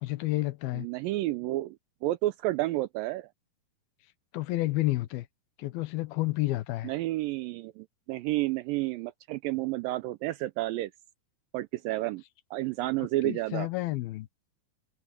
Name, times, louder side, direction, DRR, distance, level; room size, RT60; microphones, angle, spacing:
voice 1, 0.0-0.9 4.3-5.3 5.6-6.9 13.2-14.3, left 18 dB, 80° left, 2.8 m, -30 dB
voice 2, 0.7-1.8 2.0-3.3 6.8-10.9 11.5-12.2 12.5-13.7, right 17 dB, 80° right, 2.1 m, -30 dB
omnidirectional pair, 4.4 m